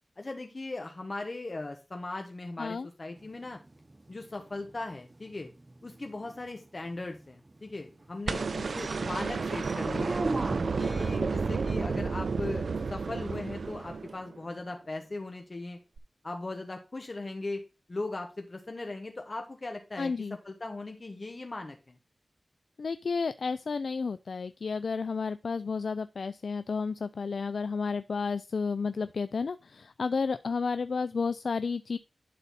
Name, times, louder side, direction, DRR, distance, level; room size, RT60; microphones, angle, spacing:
voice 1, 0.2-3.6 4.1-5.5 5.8-10.2 10.8-15.8 16.2-17.6 17.9-22.0, left 2 dB, 40° left, 4 dB, 1.2 m, -38 dB
sound 1, 3.2-11.1 14.1-14.2, right 2 dB, 35° right, 0.9 m, -42 dB
sound 2, 8.3-14.4 16.0-16.1, right 4 dB, 75° right, 0.5 m, -31 dB
voice 2, 20.0-20.4 22.8-32.0, left 4 dB, 80° left, 13 dB, 0.4 m, -32 dB
11.5 x 4.1 x 4.1 m, 0.29 s
wide cardioid pair, 80°, 0 cm